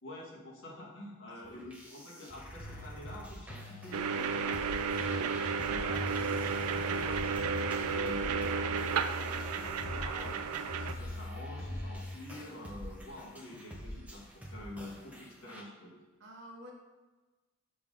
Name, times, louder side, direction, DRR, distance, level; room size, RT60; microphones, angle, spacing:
voice 1, 0.0-4.6 5.0-10.4 10.8-16.1, left 1 dB, 60° left, -4 dB, 1.6 m, -47 dB
sound 1, 1.4-15.6, equal, 5° right, 0.8 m, -47 dB
voice 2, 1.5-2.3 16.2-16.7, equal, 50° right, -1 dB, 1.1 m, -52 dB
sound 2, 2.6-3.2 3.5-5.5 5.9-8.0 8.3-10.3 10.7-12.2, left 2 dB, 45° left, 0.6 m, -42 dB
sound 3, 3.9-10.9, right 5 dB, 85° right, 0.4 m, -33 dB
6.3 x 5.3 x 3.7 m, 1.2 s
head